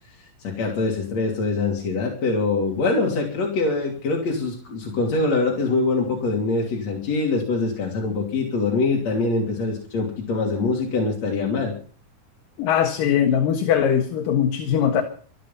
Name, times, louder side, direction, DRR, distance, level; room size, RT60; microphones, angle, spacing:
voice 1, 0.4-11.8, left 3 dB, 45° left, 3.9 m, -24 dB
voice 2, 12.6-15.0, left 8 dB, 70° left, 3.1 m, -20 dB
25.5 x 9.5 x 5.7 m
omnidirectional pair, 4.4 m